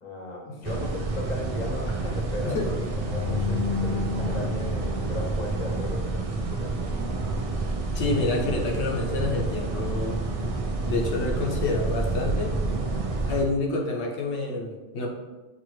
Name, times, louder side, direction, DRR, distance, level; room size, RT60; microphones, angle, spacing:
voice 1, 0.0-6.9, left 1 dB, 40° left, 0 dB, 0.9 m, -36 dB
sound 1, 0.6-13.4, right 3 dB, 50° right, 0.4 m, -29 dB
sound 2, 2.8-6.0, left 6 dB, 80° right, 1.0 m, -32 dB
voice 2, 7.9-10.2 10.8-12.5 13.3-15.1, left 3 dB, 75° left, 0 dB, 1.0 m, -28 dB
6.0 x 2.5 x 3.1 m, 1.2 s
omnidirectional pair, 1.2 m